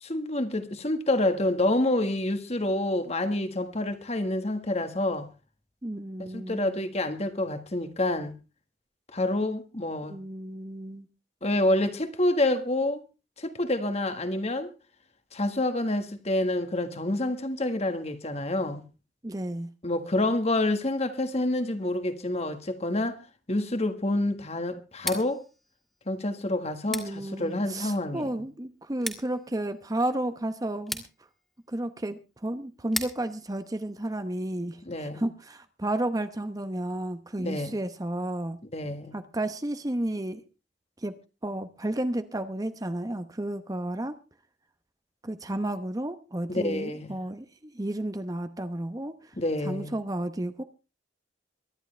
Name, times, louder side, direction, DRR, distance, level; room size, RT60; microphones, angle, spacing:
voice 1, 0.0-5.3 6.2-8.4 9.1-10.1 11.4-13.0 13.4-14.7 15.3-18.9 19.8-23.2 23.5-25.4 26.1-28.3 34.8-35.2 37.4-37.8 38.7-39.2 46.5-47.2 49.4-50.0, left 1 dB, 40° left, 1.6 m, -28 dB
voice 2, 5.8-6.8 10.1-11.1 19.2-19.7 26.9-31.0 31.7-38.6 39.1-40.4 41.0-41.1 41.4-44.2 45.2-49.1 49.7-50.6, right 1 dB, 20° right, 0.9 m, -32 dB
Scissors, 24.9-34.7, equal, ahead, 2.4 m, -42 dB
23.5 x 11.0 x 3.3 m
head